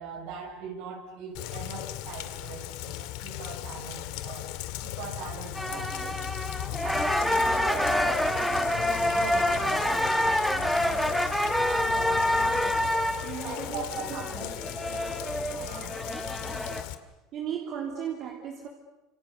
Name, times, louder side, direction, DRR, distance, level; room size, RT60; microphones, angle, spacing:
voice 1, 0.0-4.5 4.8-6.2 6.8-11.1 11.9-12.8 13.4-14.5 15.5-16.0, right 5 dB, 60° right, 2 dB, 6.8 m, -42 dB
Rain, 1.3-16.9, left 14 dB, 60° left, 2.1 m, -37 dB
sound 1, 5.5-16.8, left 1 dB, ahead, 1.5 m, -27 dB
voice 2, 13.2-14.5 14.9-15.1 17.3-18.7, right 8 dB, 40° right, 1 dB, 3.0 m, -36 dB
30.0 x 27.0 x 7.0 m, 1.1 s
cardioid pair, 175°, 0 cm